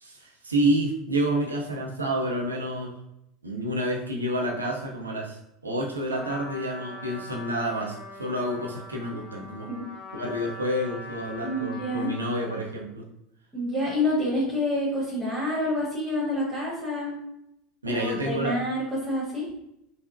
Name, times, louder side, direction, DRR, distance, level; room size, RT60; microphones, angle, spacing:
voice 1, 0.0-2.9 3.4-9.7 10.1-13.0 17.8-18.5, right 1 dB, 85° right, 0 dB, 0.5 m, -29 dB
Trumpet, 6.1-12.7, left 1 dB, 20° left, 1.0 m, -42 dB
voice 2, 11.4-12.1 13.5-17.2 17.8-19.5, left 1 dB, 10° right, -8 dB, 1.2 m, -28 dB
3.9 x 2.1 x 2.5 m, 0.81 s
figure-of-eight pair, 75°, 0 cm